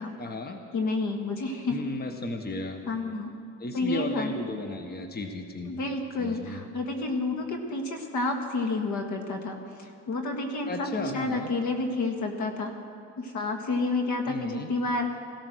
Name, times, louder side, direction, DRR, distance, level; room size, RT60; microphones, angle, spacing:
voice 1, 0.2-0.6 1.7-2.8 3.6-5.7 6.2-6.6 10.7-11.5 14.3-14.7, left 2 dB, 30° left, 6 dB, 1.3 m, -34 dB
voice 2, 0.7-1.8 2.9-3.3 3.7-4.3 5.7-12.7 13.2-15.2, left 2 dB, 75° left, 4 dB, 1.8 m, -30 dB
16.0 x 13.5 x 6.4 m, 2.4 s
cardioid pair, 90°, 30 cm